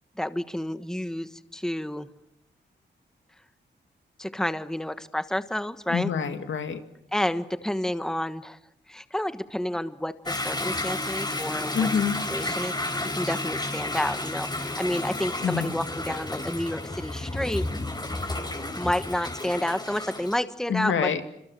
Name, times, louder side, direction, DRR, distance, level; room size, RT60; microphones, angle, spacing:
voice 1, 0.2-2.1 4.2-6.1 7.1-8.6 8.9-11.8 12.3-17.6 18.2-18.3 18.8-21.2, left 1 dB, 5° left, 11 dB, 1.3 m, -30 dB
voice 2, 5.9-6.8 11.7-12.2 15.4-15.7 20.7-21.2, left 7 dB, 90° left, 7 dB, 2.3 m, -26 dB
Toilet flush / Drip / Trickle dribble, 10.3-20.4, left 2 dB, 20° left, 5.3 m, -32 dB
27.0 x 26.0 x 7.5 m, 0.77 s
cardioid pair, 90°, 19 cm